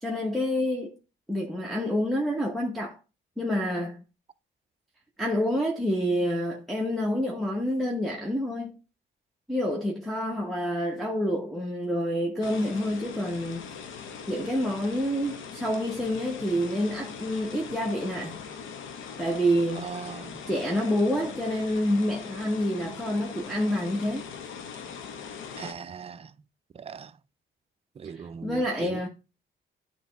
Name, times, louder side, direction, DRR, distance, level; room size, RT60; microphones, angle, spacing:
voice 1, 0.0-1.0 1.3-3.0 3.4-4.0 5.2-8.7 9.5-13.8 14.3-18.4 19.2-19.9 20.5-24.2 28.1-29.1, equal, ahead, 0.9 m, -28 dB
sound 1, 12.4-25.7, left 6 dB, 85° left, 0.9 m, -41 dB
voice 2, 19.8-20.4 25.6-26.3 26.7-27.2 28.0-29.0, right 6 dB, 30° right, 0.4 m, -39 dB
8.9 x 3.0 x 3.9 m
cardioid pair, 90°, 20 cm